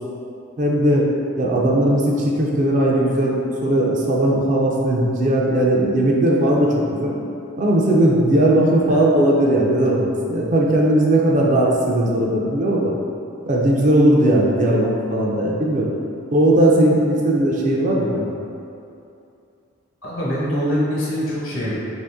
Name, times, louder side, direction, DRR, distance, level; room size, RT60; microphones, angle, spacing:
voice 1, 0.6-1.1 1.4-7.1 7.6-12.9 13.5-15.9 16.3-18.2, right 1 dB, 35° right, -2 dB, 0.4 m, -18 dB
voice 2, 20.0-21.7, equal, 75° left, -8 dB, 1.1 m, -24 dB
2.9 x 2.7 x 3.5 m, 2.6 s
head